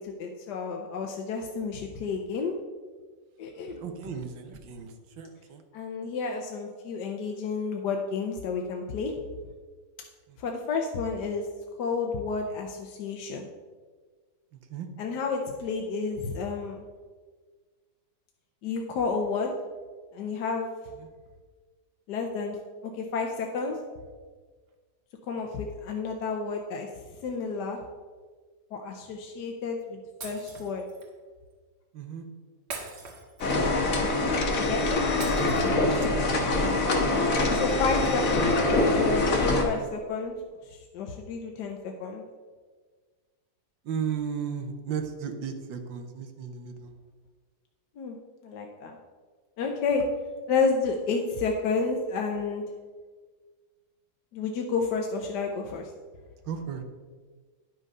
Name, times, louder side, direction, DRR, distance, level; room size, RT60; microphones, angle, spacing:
voice 1, 0.0-2.5 3.4-3.8 5.7-9.1 10.4-11.5 11.8-13.5 15.0-16.8 18.6-19.5 20.1-20.7 22.1-22.6 23.0-23.8 25.3-26.9 27.2-27.8 28.7-30.8 34.6-35.0 37.5-40.3 40.9-42.2 48.0-48.2 48.4-49.0 49.6-50.0 50.5-52.6 54.3-55.8, left 4 dB, 70° left, 2 dB, 1.3 m, -30 dB
voice 2, 3.8-5.6 14.7-14.9 21.0-21.1 31.9-32.2 36.2-36.7 37.2-37.6 43.8-46.9 56.5-56.8, right 7 dB, 85° right, 6 dB, 1.7 m, -35 dB
Shatter, 30.2-31.1 32.7-33.8 35.2-36.2, right 3 dB, 65° right, 2.2 m, -41 dB
sound 1, 33.4-39.6, left 2 dB, 50° left, 1.5 m, -24 dB
10.0 x 6.4 x 5.4 m, 1.5 s
omnidirectional pair, 2.0 m